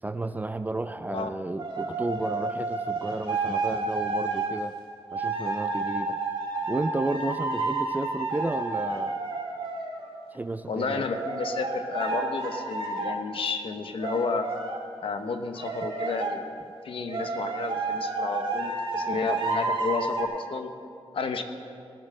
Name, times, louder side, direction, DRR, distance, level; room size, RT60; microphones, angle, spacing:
voice 1, 0.0-4.7 5.1-6.2 6.7-9.2 10.3-11.1 19.4-19.6, right 2 dB, 15° right, 11 dB, 0.3 m, -32 dB
sound 1, 1.6-4.6 5.1-10.1 10.8-13.2 14.0-14.8 15.6-16.4 17.1-20.2, right 3 dB, 60° right, 2.0 m, -30 dB
voice 2, 10.7-14.5 15.0-16.4 16.8-20.7 21.1-21.4, left 4 dB, 65° left, 7 dB, 1.0 m, -31 dB
19.5 x 7.6 x 6.6 m, 2.5 s
wide cardioid pair, 160°, 10 cm